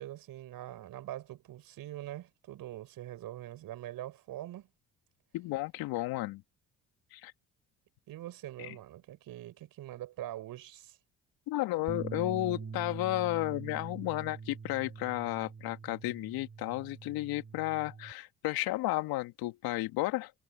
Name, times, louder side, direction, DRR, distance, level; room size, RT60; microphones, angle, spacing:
voice 1, 0.0-4.7 8.1-11.0, right 13 dB, 65° right, 5.5 m, -43 dB
voice 2, 5.3-6.4 7.1-7.3 8.6-8.8 11.5-20.3, left 18 dB, 70° left, 2.2 m, -33 dB
Bass guitar, 11.9-18.1, right 5 dB, 35° right, 3.7 m, -44 dB
hypercardioid pair, 55°, 37 cm